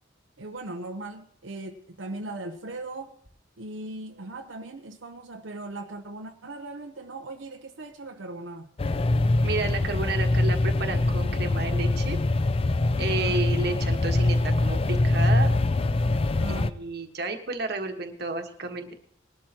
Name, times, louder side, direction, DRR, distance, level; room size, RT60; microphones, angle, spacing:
voice 1, 0.4-3.1 3.6-8.7 13.1-13.5 15.0-15.1 16.4-16.7, right 2 dB, 85° right, 4 dB, 0.9 m, -38 dB
sound 1, 8.8-16.7, left 2 dB, 30° left, 0.4 m, -24 dB
voice 2, 9.4-12.2 13.0-15.5 16.5-18.9, right 3 dB, 55° right, 5 dB, 1.4 m, -31 dB
20.0 x 12.0 x 2.9 m, 0.65 s
head